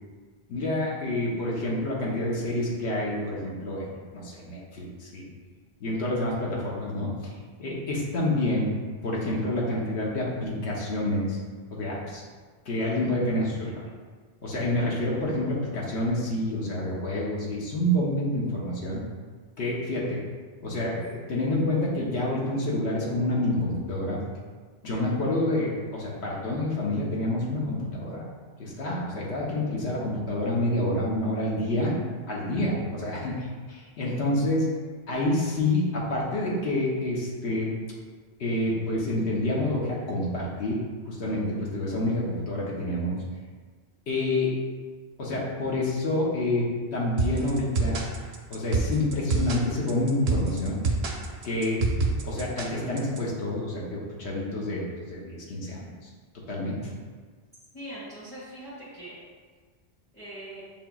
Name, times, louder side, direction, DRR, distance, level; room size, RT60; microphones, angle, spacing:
voice 1, 0.5-3.9 4.1-5.3 5.8-7.3 7.6-8.7 9.0-11.4 11.7-12.2 12.7-13.8 14.4-19.0 19.6-20.2 20.6-24.2 24.8-28.3 28.6-32.0 32.3-34.6 35.1-37.7 38.4-40.8 41.0-43.2 44.1-44.5 45.2-46.6 46.9-48.0 48.5-50.8 51.4-51.8 52.3-55.9 56.5-56.9, left 1 dB, 90° left, -4 dB, 1.2 m, -28 dB
sound 1, 47.2-53.2, right 3 dB, 85° right, 0.9 m, -27 dB
voice 2, 57.7-59.2 60.1-60.6, right 1 dB, 10° left, -12 dB, 1.3 m, -41 dB
7.3 x 2.8 x 2.3 m, 1.5 s
omnidirectional pair, 1.1 m